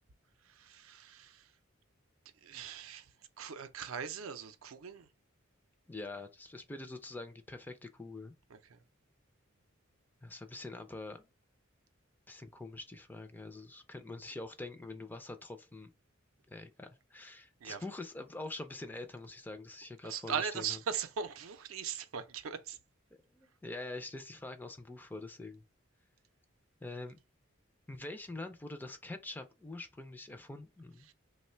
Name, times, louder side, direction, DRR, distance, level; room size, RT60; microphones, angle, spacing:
voice 1, 0.6-1.4 2.4-3.1 3.4-5.1 8.7-8.8 17.6-17.8 20.0-22.8 31.1-31.2, right 7 dB, 85° right, 0.5 m, -39 dB
voice 2, 5.9-8.3 10.2-11.3 12.3-15.9 16.5-20.8 23.3-25.6 26.8-27.2 27.9-31.1, left 2 dB, 10° left, 0.3 m, -45 dB
3.1 x 2.1 x 4.2 m
head